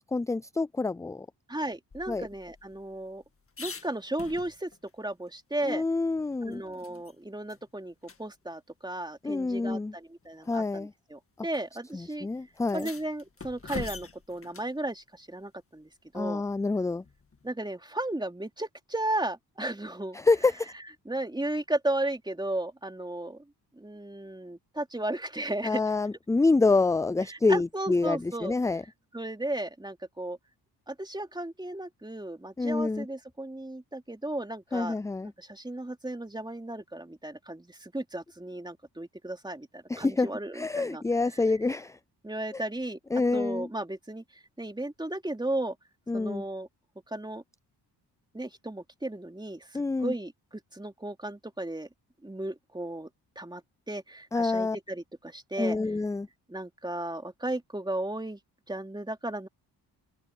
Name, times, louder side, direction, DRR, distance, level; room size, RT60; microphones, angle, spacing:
voice 1, 0.1-1.3 2.1-2.3 5.6-6.6 9.2-9.9 10.5-10.9 11.9-12.9 16.1-17.0 20.1-20.7 25.6-28.8 32.6-33.1 34.7-35.3 39.9-40.3 40.5-42.0 43.1-43.7 46.1-46.4 49.7-50.1 54.3-54.8 55.6-56.3, left 3 dB, 10° left, 0.3 m, -27 dB
voice 2, 1.5-3.2 3.6-5.8 6.4-12.3 12.7-16.4 17.4-20.2 21.0-23.4 23.8-25.8 27.3-28.5 29.1-30.4 30.9-35.0 35.4-41.0 41.3-41.4 42.2-43.0 43.3-45.7 46.1-46.7 47.1-47.4 48.3-50.3 50.7-51.9 52.2-53.1 53.3-53.6 53.9-55.8 56.5-58.4 58.7-59.5, right 1 dB, 10° right, 3.0 m, -35 dB
sound 1, 1.9-4.9 5.3-5.4 5.7-7.2 7.5-7.6 8.0-8.2 9.2-9.3 10.2-10.5 11.5-11.6 11.9-12.0 12.6-14.8 17.0-17.5, left 4 dB, 30° left, 1.9 m, -44 dB
open air
cardioid pair, 70°, 41 cm